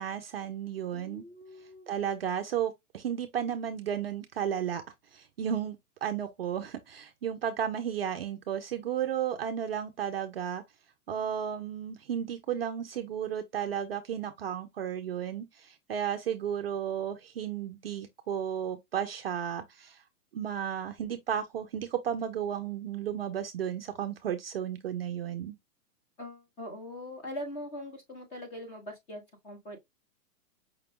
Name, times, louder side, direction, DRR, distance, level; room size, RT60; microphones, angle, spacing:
voice 1, 0.0-1.2 1.9-4.8 5.1-10.6 11.1-20.0 20.3-25.6, right 9 dB, 45° right, 0.5 m, -33 dB
voice 2, 0.9-1.9 26.2-29.8, left 1 dB, 15° left, 0.9 m, -42 dB
5.1 x 2.3 x 3.4 m
hypercardioid pair, 155°, 45 cm